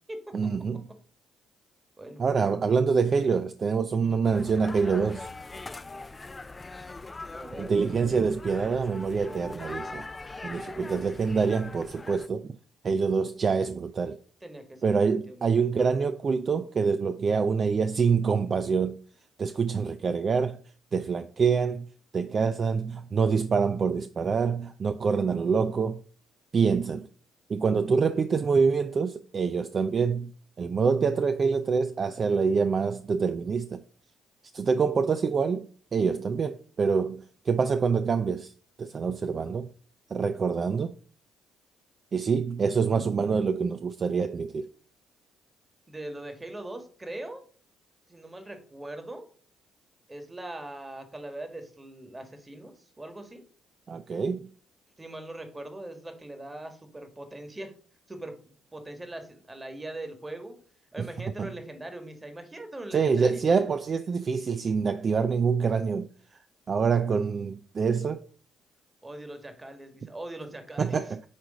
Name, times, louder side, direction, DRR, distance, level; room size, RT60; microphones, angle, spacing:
voice 1, 0.3-0.8 2.2-5.3 7.6-10.1 10.4-12.5 12.8-14.2 14.8-19.0 19.4-20.6 20.9-21.9 22.1-26.0 26.5-27.1 27.5-30.3 30.6-33.8 34.5-35.7 35.9-38.5 38.8-39.7 40.1-40.9 42.1-44.7 53.9-54.5 61.0-61.1 61.4-61.5 62.9-66.1 66.7-68.3 70.8-71.3, right 5 dB, 45° right, 0.4 m, -26 dB
voice 2, 3.9-4.2 7.3-7.8 14.4-15.5 45.9-47.5 48.1-49.3 50.1-53.4 55.0-57.7 58.1-58.4 58.7-60.5 60.9-63.5 69.0-71.0, right 1 dB, 20° right, 1.6 m, -41 dB
sound 1, 4.2-12.3, left 3 dB, 25° left, 0.4 m, -41 dB
8.3 x 3.2 x 5.0 m
supercardioid pair, 65°, 0 cm